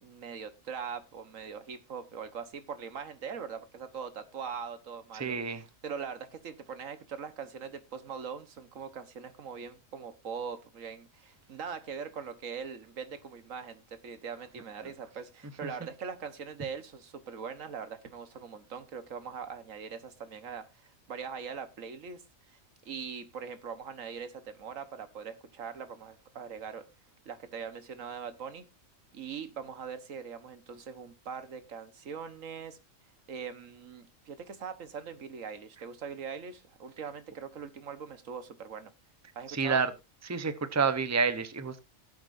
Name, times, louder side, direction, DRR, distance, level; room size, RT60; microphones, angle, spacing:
voice 1, 0.0-22.2 22.5-22.6 22.8-26.8 27.2-28.7 29.1-32.8 33.3-38.9 39.3-39.8, right 6 dB, 80° right, 1.6 m, -41 dB
voice 2, 5.1-5.6 39.5-39.9 40.2-41.8, right 5 dB, 15° right, 0.8 m, -29 dB
17.0 x 8.1 x 2.6 m
omnidirectional pair, 1.3 m